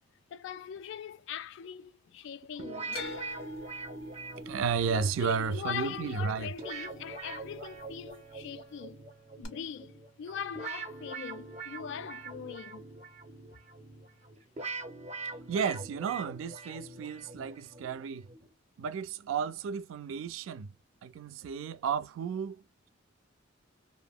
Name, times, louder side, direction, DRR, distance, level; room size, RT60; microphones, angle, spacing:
voice 1, 0.3-3.1 4.9-9.0 9.4-12.9, left 8 dB, 65° left, 0.3 m, -41 dB
sound 1, 2.6-18.5, right 3 dB, 35° right, 0.6 m, -43 dB
sound 2, 2.9-7.1 7.4-8.1 9.4-9.5, left 3 dB, 90° left, 0.8 m, -45 dB
voice 2, 4.5-6.5 15.5-18.3 18.8-20.7 21.0-22.6, right 6 dB, 90° right, 0.3 m, -33 dB
2.8 x 2.5 x 2.3 m
head